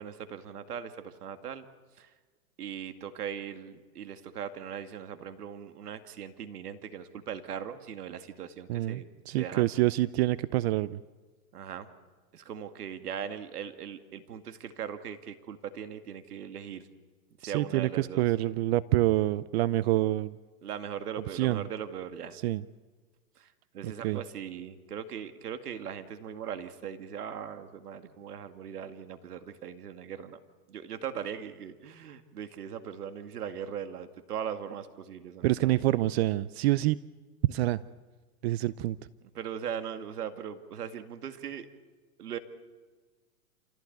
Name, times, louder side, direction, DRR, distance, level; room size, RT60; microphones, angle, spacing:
voice 1, 0.0-1.7 2.0-2.1 2.6-9.1 9.4-9.6 11.5-11.9 12.3-16.9 17.4-18.3 20.6-22.4 23.4-23.5 23.7-30.4 30.7-35.8 39.3-41.7 42.2-42.4, right 8 dB, 85° right, 9 dB, 2.3 m, -39 dB
voice 2, 8.7-11.0 17.4-20.4 21.3-21.6 22.4-22.6 23.8-24.2 35.4-37.0 37.4-37.8 38.4-39.0, right 16 dB, 45° right, 18 dB, 0.6 m, -27 dB
28.0 x 16.5 x 9.4 m, 1.4 s
hypercardioid pair, 130°, 45 cm